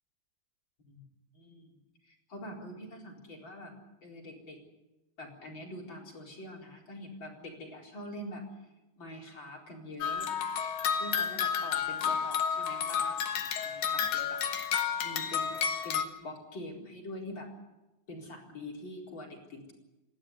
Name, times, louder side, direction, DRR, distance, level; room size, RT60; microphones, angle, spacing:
voice 1, 1.3-1.7 2.0-3.7 4.0-4.6 5.2-8.4 9.0-10.3 10.9-14.4 15.0-17.5 18.1-19.7, left 1 dB, 30° left, 0 dB, 4.6 m, -45 dB
sound 1, 10.0-16.0, left 7 dB, 65° left, 2.9 m, -31 dB
28.5 x 12.5 x 9.8 m, 1.0 s
omnidirectional pair, 4.6 m